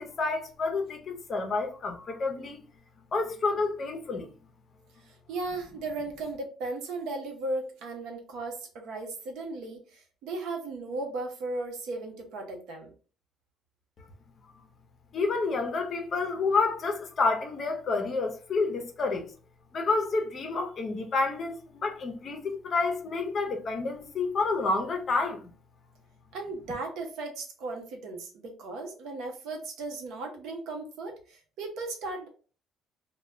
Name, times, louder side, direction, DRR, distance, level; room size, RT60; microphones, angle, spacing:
voice 1, 0.0-2.6 3.1-4.3 15.1-19.3 19.7-25.5, left 3 dB, 40° left, 0.5 m, -29 dB
voice 2, 5.0-12.9 26.3-32.3, right 2 dB, 85° right, 0.7 m, -36 dB
2.1 x 2.1 x 3.5 m
cardioid pair, 130°, 0 cm